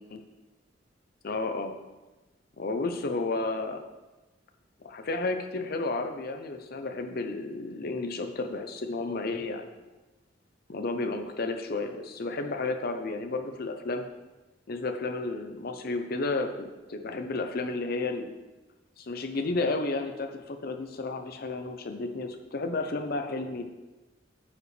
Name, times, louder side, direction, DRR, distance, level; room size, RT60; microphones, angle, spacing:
voice 1, 1.2-1.7 2.6-3.8 4.8-9.7 10.7-14.0 14.7-18.3 19.0-23.6, left 3 dB, 55° left, 6 dB, 0.6 m, -32 dB
9.5 x 5.0 x 3.3 m, 1.1 s
head